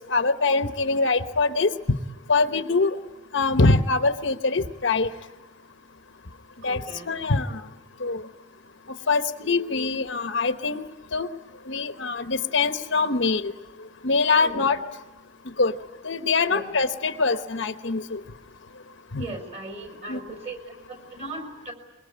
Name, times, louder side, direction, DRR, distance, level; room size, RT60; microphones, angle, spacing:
voice 1, 0.1-1.7 2.3-2.9 3.3-5.1 6.6-6.8 7.1-7.6 8.0-8.2 9.1-10.8 11.1-11.3 11.7-13.5 14.0-14.8 15.6-15.7 16.0-18.2 19.1-19.3 20.1-20.2, left 3 dB, 60° left, 9 dB, 1.0 m, -23 dB
voice 2, 6.6-7.1 14.4-14.7 16.5-16.7 19.2-21.7, right 2 dB, 30° right, 4 dB, 5.3 m, -38 dB
24.0 x 23.0 x 10.0 m, 1.1 s
head